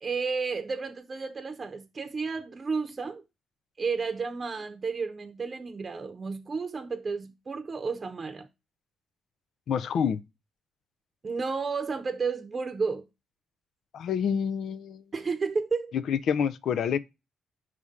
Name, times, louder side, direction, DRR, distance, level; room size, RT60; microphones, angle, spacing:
voice 1, 0.0-3.2 3.8-8.5 11.2-13.1 15.1-15.9, right 4 dB, 40° right, 0.8 m, -32 dB
voice 2, 9.7-10.2 13.9-15.0 15.9-17.0, left 7 dB, 65° left, 0.5 m, -27 dB
5.0 x 3.6 x 5.5 m
supercardioid pair, 55°, 0 cm